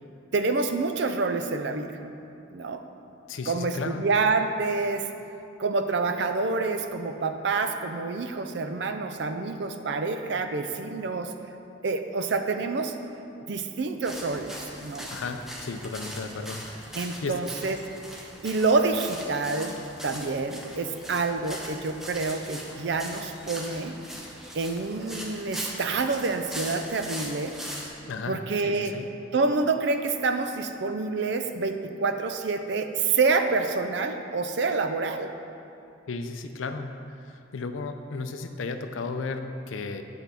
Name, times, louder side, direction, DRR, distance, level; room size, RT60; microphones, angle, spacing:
voice 1, 0.3-2.0 2.5-2.8 3.5-5.1 5.6-11.3 11.8-12.9 13.5-14.5 14.8-15.1 16.9-17.8 18.1-24.0 24.5-27.5 28.3-29.0 29.3-35.3, right 3 dB, 60° right, 7 dB, 0.4 m, -27 dB
voice 2, 3.3-4.1 15.1-17.4 28.1-29.1 36.1-36.9 37.2-40.0, left 4 dB, 85° left, 7 dB, 0.5 m, -34 dB
sound 1, 14.0-27.9, equal, ahead, 0.6 m, -40 dB
8.2 x 3.9 x 5.7 m, 2.6 s
head